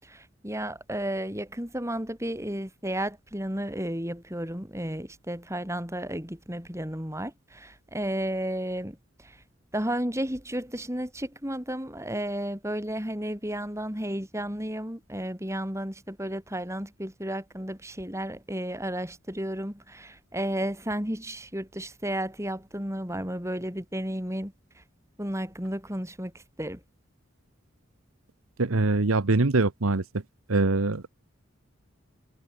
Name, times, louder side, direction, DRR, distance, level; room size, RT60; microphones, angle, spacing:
voice 1, 0.0-9.4 9.7-24.5 25.2-26.8, right 1 dB, 15° right, 7.2 m, -33 dB
voice 2, 28.6-30.0 30.5-31.1, right 3 dB, 85° right, 1.1 m, -23 dB
head